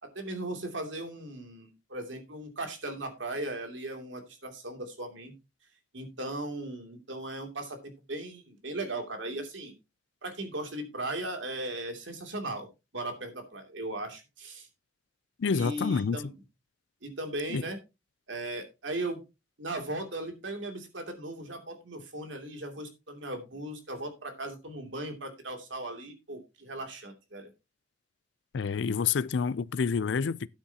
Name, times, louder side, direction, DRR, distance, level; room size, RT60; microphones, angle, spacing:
voice 1, 0.0-5.3 5.9-9.7 10.2-12.7 12.9-14.7 15.5-16.3 17.0-17.8 18.3-19.2 19.6-27.5, right 2 dB, 75° right, 2.8 m, -37 dB
voice 2, 15.4-16.2 17.5-17.6 28.5-30.5, left 5 dB, 65° left, 0.4 m, -28 dB
12.5 x 9.6 x 2.9 m
head